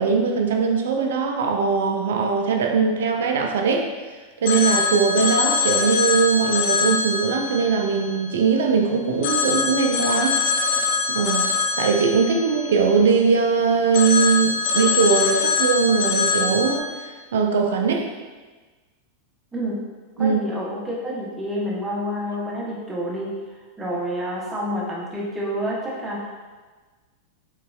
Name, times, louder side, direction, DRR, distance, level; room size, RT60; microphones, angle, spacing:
voice 1, 0.0-3.9 4.4-10.4 11.1-11.5 11.8-18.1 20.2-20.4, right 5 dB, 60° right, 3 dB, 0.4 m, -20 dB
Telephone, 4.4-8.7 9.2-13.4 13.9-16.8, left 5 dB, 50° left, 0.5 m, -24 dB
voice 2, 20.2-23.3 23.8-26.4, equal, 10° right, -4 dB, 0.9 m, -28 dB
3.9 x 3.9 x 2.3 m, 1.3 s
figure-of-eight pair, 90°, 0 cm